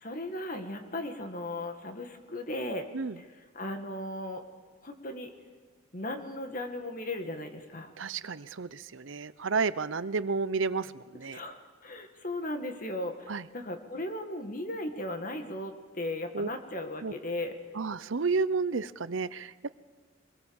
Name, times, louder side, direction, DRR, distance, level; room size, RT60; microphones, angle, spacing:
voice 1, 0.0-2.9 3.2-3.3 3.5-4.4 4.8-5.3 5.9-7.9 11.3-17.6, left 1 dB, 45° left, 6 dB, 2.0 m, -36 dB
voice 2, 8.0-11.4 13.3-13.4 16.3-16.5 17.0-17.2 17.8-19.5, right 4 dB, 80° right, 16 dB, 0.7 m, -31 dB
24.0 x 21.0 x 7.2 m, 1.5 s
head